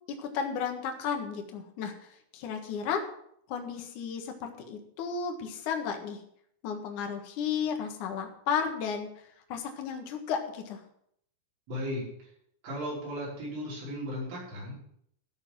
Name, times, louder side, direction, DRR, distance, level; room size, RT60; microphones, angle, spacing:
voice 1, 0.1-3.0 3.5-6.2 6.6-9.1 9.5-10.8, left 6 dB, 60° left, 4 dB, 2.1 m, -33 dB
voice 2, 11.7-12.0 12.6-14.8, equal, 75° right, -7 dB, 7.9 m, -35 dB
14.0 x 6.4 x 7.6 m, 0.70 s
omnidirectional pair, 5.7 m